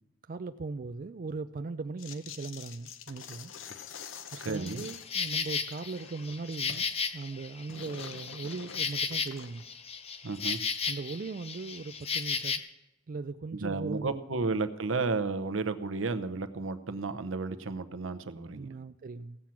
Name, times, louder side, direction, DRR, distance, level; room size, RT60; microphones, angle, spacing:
voice 1, 0.3-3.5 4.3-6.9 7.1-9.6 10.9-12.6 13.1-14.4 18.5-19.4, right 3 dB, 45° right, 0.4 m, -39 dB
sound 1, 2.0-5.2 5.5-6.9 7.2-9.7, left 7 dB, 85° left, 0.8 m, -47 dB
voice 2, 4.4-4.8 10.2-10.6 13.6-18.7, right 3 dB, 80° right, 0.8 m, -32 dB
Insect, 4.5-12.6, left 5 dB, 30° left, 0.7 m, -34 dB
16.0 x 7.5 x 5.8 m
head